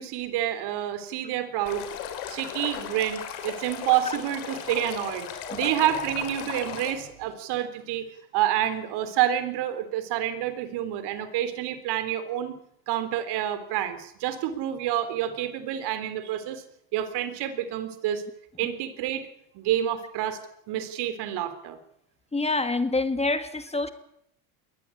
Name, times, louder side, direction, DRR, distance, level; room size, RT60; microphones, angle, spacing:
voice 1, 0.0-1.8 2.3-8.1 8.3-12.6 12.9-16.6 16.9-18.2 18.6-19.3 19.5-20.4 20.7-21.8, right 11 dB, 65° right, 11 dB, 3.7 m, -28 dB
Stream, 1.7-6.9, left 9 dB, 80° left, 5.5 m, -36 dB
voice 2, 22.3-23.9, left 3 dB, 15° left, 10 dB, 2.1 m, -27 dB
22.0 x 18.5 x 8.7 m, 0.75 s
supercardioid pair, 100°, 43 cm